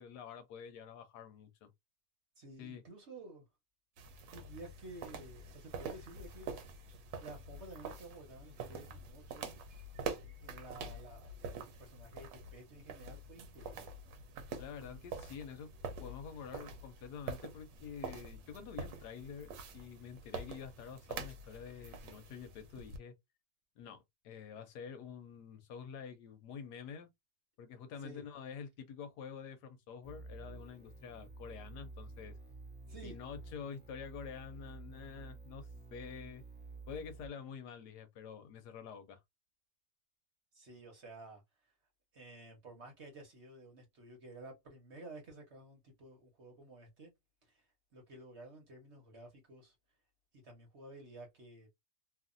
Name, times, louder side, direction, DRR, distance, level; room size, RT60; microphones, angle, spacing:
voice 1, 0.0-1.7 2.6-2.8 14.6-15.7 16.0-23.1 23.8-27.1 27.6-32.3 33.0-36.4 36.9-39.2, left 7 dB, 75° left, 1.1 m, -48 dB
voice 2, 2.4-3.4 4.3-6.5 7.2-9.4 10.0-13.9 28.0-28.2 32.9-33.2 40.5-41.7 42.1-47.1 47.4-47.7 47.9-49.7 50.4-51.7, right 2 dB, 45° right, 1.1 m, -52 dB
sound 1, 4.0-23.0, right 4 dB, 85° right, 1.4 m, -46 dB
sound 2, 30.0-37.3, right 3 dB, 10° right, 0.4 m, -51 dB
3.0 x 2.4 x 2.5 m
omnidirectional pair, 1.9 m